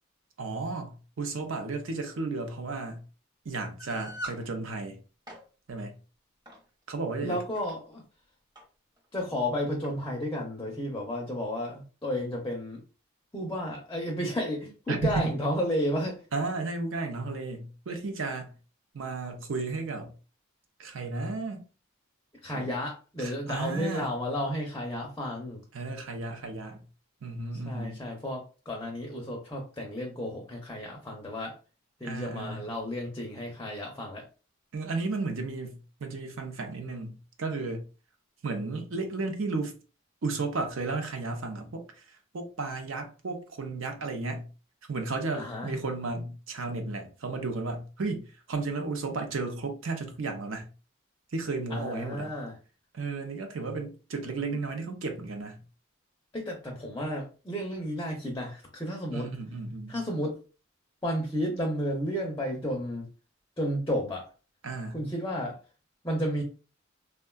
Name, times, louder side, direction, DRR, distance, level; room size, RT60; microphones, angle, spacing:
voice 1, 0.4-3.0 3.4-5.0 5.7-5.9 6.9-7.4 14.9-15.2 16.3-18.5 18.9-20.1 20.8-21.6 22.5-22.7 23.2-24.1 25.7-26.8 27.2-28.0 32.0-32.7 34.7-37.9 38.4-39.7 40.2-44.5 44.9-50.7 51.3-52.3 52.9-55.6 59.1-60.0 64.6-65.0, right 3 dB, 75° right, 0.6 m, -33 dB
sound 1, 3.8-4.4 5.1-5.4 6.5-6.7 7.3-7.7 8.6-8.7 9.0-9.1 9.8-10.0, right 1 dB, 20° right, 0.8 m, -41 dB
voice 2, 7.2-8.0 9.1-12.8 13.3-16.2 22.4-25.6 27.6-31.6 32.0-34.3 45.3-45.8 51.7-52.6 54.5-54.6 56.3-59.3 59.9-60.4 61.0-63.0 63.6-64.3 64.9-65.6 66.0-66.4, equal, 15° left, 0.5 m, -32 dB
3.5 x 2.2 x 2.2 m
head